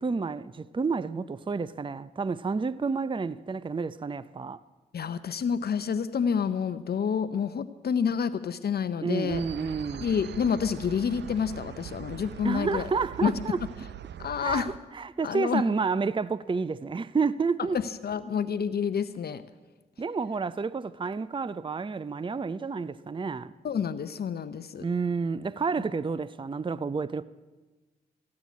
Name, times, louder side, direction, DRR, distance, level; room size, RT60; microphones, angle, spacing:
voice 1, 0.0-4.6 9.0-10.1 12.4-13.6 14.4-14.7 14.9-17.8 20.0-23.5 24.8-27.2, right 4 dB, 30° right, 0.5 m, -30 dB
voice 2, 4.9-9.4 10.0-12.9 13.2-13.3 14.2-14.7 15.2-15.6 17.7-19.4 23.6-24.9, left 7 dB, 65° left, 0.7 m, -28 dB
sound 1, 9.3-14.8, right 10 dB, 75° right, 0.6 m, -42 dB
15.0 x 10.5 x 8.3 m
supercardioid pair, 40°, 18 cm